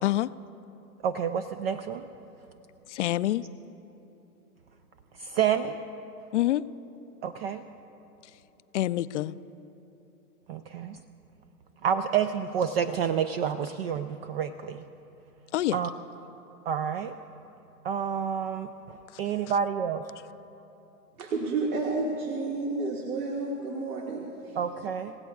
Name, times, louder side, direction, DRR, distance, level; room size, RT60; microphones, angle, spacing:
voice 1, 1.0-2.1 5.1-5.8 7.2-7.6 10.5-11.0 11.8-14.9 15.7-15.9 16.7-17.2 17.8-20.1 24.5-25.2, right 8 dB, 40° right, 10 dB, 0.5 m, -29 dB
voice 2, 2.9-3.4 6.3-6.6 8.7-9.3 15.5-15.8 19.1-19.2, left 14 dB, 50° left, 16 dB, 0.4 m, -26 dB
voice 3, 21.2-24.6, right 3 dB, 70° right, 0 dB, 2.0 m, -31 dB
28.0 x 16.5 x 2.4 m, 2.9 s
hypercardioid pair, 130°, 46 cm